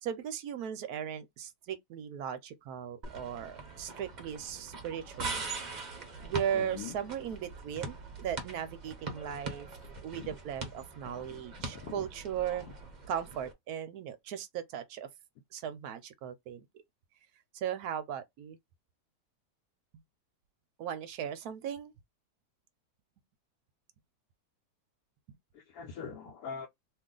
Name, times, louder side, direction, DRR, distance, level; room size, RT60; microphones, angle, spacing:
voice 1, 0.0-5.5 6.2-9.7 10.0-12.7 13.1-15.1 15.5-16.7 17.5-18.6 20.8-21.9, right 9 dB, 70° right, 1.0 m, -37 dB
sound 1, 3.0-13.5, right 3 dB, 45° right, 0.6 m, -42 dB
voice 2, 6.5-7.0 10.1-10.3 11.2-12.1 12.5-12.7 25.5-26.7, left 7 dB, 70° left, 1.0 m, -44 dB
2.9 x 2.5 x 3.7 m
omnidirectional pair, 1.9 m